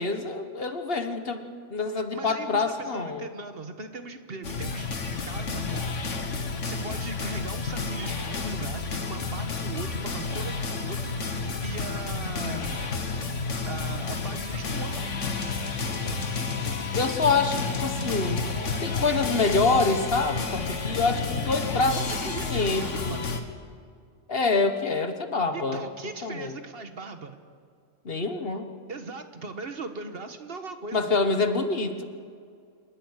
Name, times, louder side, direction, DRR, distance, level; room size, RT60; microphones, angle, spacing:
voice 1, 0.0-1.4 1.7-3.2 16.1-16.2 17.0-18.4 18.8-22.0 22.5-23.2 24.3-25.8 26.2-26.5 28.0-28.7 30.9-32.0, left 3 dB, 50° left, 8 dB, 1.5 m, -26 dB
voice 2, 2.1-4.9 5.2-13.0 13.6-15.1 21.9-23.2 25.5-27.4 28.9-31.1, right 3 dB, 50° right, 8 dB, 1.6 m, -39 dB
sound 1, 4.4-23.4, left 4 dB, 70° left, 1.9 m, -30 dB
27.5 x 11.5 x 9.8 m, 2.2 s
omnidirectional pair, 1.3 m